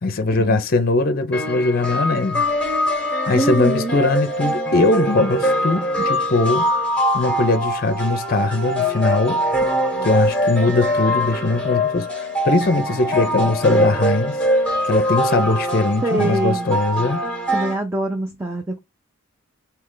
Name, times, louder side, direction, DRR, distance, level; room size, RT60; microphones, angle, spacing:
voice 1, 0.0-2.5 3.3-6.7 7.1-9.4 10.0-14.4 14.8-17.3, left 3 dB, 45° left, 0.5 m, -20 dB
sound 1, 1.3-17.7, equal, 5° left, 0.9 m, -22 dB
voice 2, 3.3-4.0 9.8-10.1 16.0-16.7 17.5-18.8, right 2 dB, 10° right, 0.5 m, -24 dB
3.2 x 2.8 x 3.7 m
head